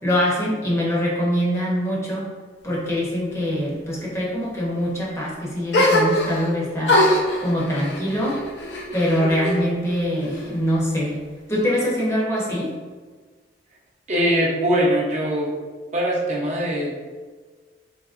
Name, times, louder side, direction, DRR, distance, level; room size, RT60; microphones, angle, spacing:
voice 1, 0.0-2.3 2.6-7.0 7.4-8.4 8.9-11.2 11.5-12.7, equal, 15° left, -5 dB, 0.7 m, -23 dB
sound 1, 5.7-6.5 6.9-9.6 9.9-10.7, left 1 dB, 70° left, 0.6 m, -22 dB
voice 2, 14.1-15.6 15.9-16.9, equal, 40° right, -3 dB, 0.6 m, -21 dB
3.6 x 2.8 x 2.4 m, 1.5 s
head